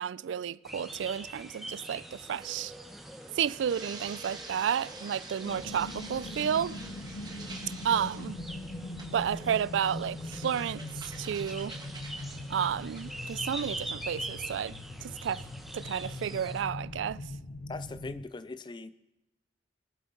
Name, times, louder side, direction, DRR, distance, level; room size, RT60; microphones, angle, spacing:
voice 1, 0.0-2.7 3.4-6.8 7.8-8.4 9.1-10.8 11.2-11.8 12.5-14.7 15.0-15.4 15.7-17.2, right 8 dB, 80° right, 0.3 m, -31 dB
sound 1, 0.6-16.6, right 1 dB, ahead, 0.9 m, -44 dB
sound 2, 2.3-13.8, right 3 dB, 20° right, 1.3 m, -49 dB
sound 3, 5.4-18.2, left 1 dB, 85° left, 0.8 m, -41 dB
voice 2, 17.7-18.9, left 3 dB, 25° left, 0.4 m, -40 dB
23.0 x 7.9 x 3.9 m
head